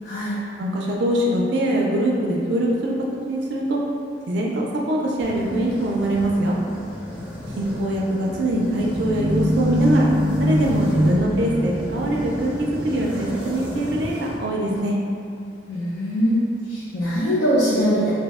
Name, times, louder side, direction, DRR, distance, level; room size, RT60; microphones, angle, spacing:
voice 1, 0.1-0.4 15.7-16.4 16.7-18.1, equal, 75° left, -9 dB, 0.5 m, -22 dB
voice 2, 0.6-2.9 3.3-3.8 4.3-6.6 7.6-10.1 10.4-15.0, right 1 dB, 75° right, -2 dB, 0.3 m, -23 dB
sound 1, 5.2-14.8, equal, 10° right, 0.5 m, -35 dB
sound 2, 8.1-13.5, equal, 15° left, 0.9 m, -24 dB
2.7 x 2.0 x 3.4 m, 2.4 s
head